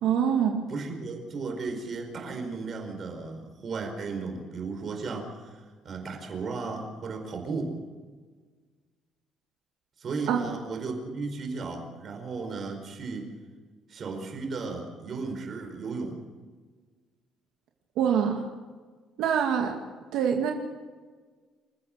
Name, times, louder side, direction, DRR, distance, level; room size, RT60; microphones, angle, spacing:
voice 1, 0.0-0.6 10.3-10.4 18.0-18.5 19.2-19.7 20.1-20.5, right 8 dB, 70° right, 2 dB, 2.2 m, -24 dB
voice 2, 0.7-7.7 10.0-13.3 13.9-16.2, right 4 dB, 35° right, 4 dB, 4.7 m, -35 dB
28.0 x 15.0 x 6.6 m, 1.5 s
cardioid pair, 170°, 0 cm